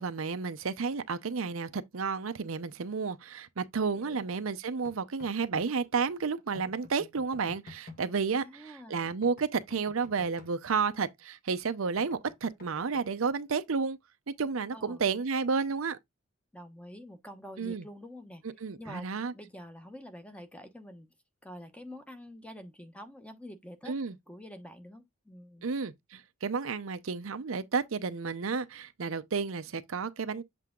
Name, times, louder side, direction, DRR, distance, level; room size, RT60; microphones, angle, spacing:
voice 1, 0.0-14.0 14.3-16.0 17.6-17.9 18.4-19.3 23.8-24.2 25.6-25.9 26.4-30.4, right 5 dB, 80° right, 0.6 m, -31 dB
sound 1, 4.9-5.7 6.5-8.0 9.1-10.5 12.0-13.0, left 2 dB, 45° left, 1.7 m, -50 dB
voice 2, 8.4-9.1 14.7-15.0 16.5-18.4 18.8-21.1 21.4-25.7, equal, 5° left, 0.9 m, -47 dB
7.6 x 3.4 x 3.7 m
head